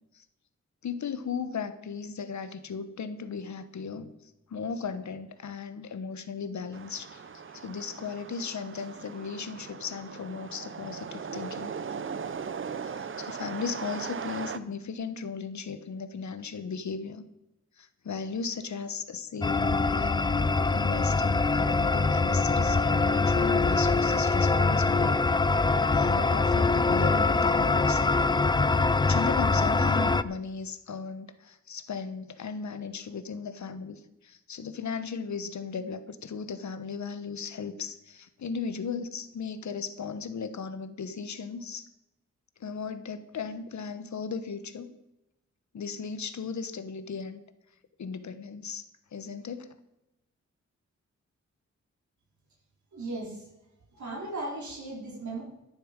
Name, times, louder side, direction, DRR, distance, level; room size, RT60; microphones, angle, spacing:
voice 1, 0.8-11.7 12.8-17.2 17.8-25.5 25.9-28.2 29.1-41.9 42.6-44.9 45.7-47.4 48.0-48.9 49.1-49.7, left 5 dB, 75° left, 11 dB, 1.1 m, -36 dB
sound 1, 6.7-14.6, right 6 dB, 45° right, 0.6 m, -38 dB
sound 2, 19.4-30.2, left 3 dB, 15° left, 0.3 m, -24 dB
voice 2, 52.9-53.4 53.9-55.4, right 2 dB, 80° right, -3 dB, 4.0 m, -36 dB
13.0 x 11.0 x 5.2 m, 0.91 s
wide cardioid pair, 170°, 29 cm